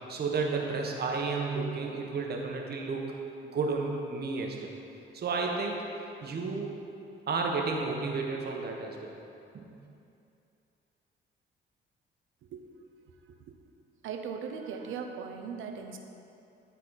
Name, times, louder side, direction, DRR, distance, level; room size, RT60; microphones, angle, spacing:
voice 1, 0.1-3.0 3.5-4.7 5.1-5.8 6.2-6.7 7.3-9.1 9.5-9.7, right 4 dB, 55° right, 0 dB, 1.1 m, -32 dB
voice 2, 14.0-16.0, right 6 dB, 80° right, 4 dB, 0.7 m, -38 dB
11.5 x 4.1 x 4.0 m, 2.7 s
cardioid pair, 90°, 20 cm